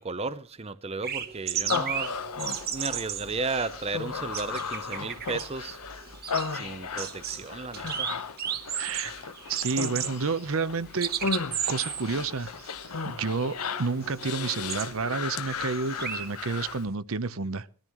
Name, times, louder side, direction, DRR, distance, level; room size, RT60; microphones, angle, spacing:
voice 1, 0.0-2.1 2.7-5.8 6.5-8.1, right 3 dB, 25° right, 0.6 m, -34 dB
sound 1, 1.0-16.9, right 9 dB, 45° right, 1.2 m, -36 dB
Human voice, 1.7-16.8, left 5 dB, 85° left, 1.1 m, -35 dB
voice 2, 8.7-11.3 11.7-12.5 13.2-17.7, right 4 dB, 65° right, 0.8 m, -30 dB
21.0 x 14.5 x 3.1 m
head